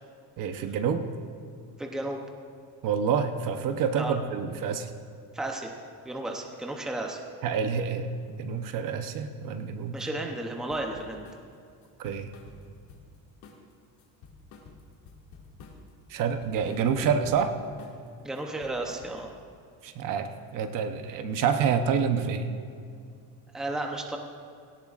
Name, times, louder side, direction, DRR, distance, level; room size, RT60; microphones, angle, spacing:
voice 1, 0.4-1.0 2.8-4.9 7.4-10.1 12.0-12.3 16.1-17.5 19.8-22.5, right 6 dB, 55° right, 7 dB, 0.9 m, -28 dB
voice 2, 1.8-2.2 4.0-4.1 5.3-5.7 6.0-7.2 9.9-11.3 18.2-19.3 23.5-24.2, right 2 dB, ahead, 1 dB, 0.7 m, -33 dB
sound 1, 10.7-11.4 11.8-13.2 13.4-13.7 14.0-15.9 16.2-17.4 17.8-18.1 18.3-19.4, left 4 dB, 80° left, 2.3 m, -50 dB
18.0 x 17.5 x 2.5 m, 2.4 s
cardioid pair, 175°, 38 cm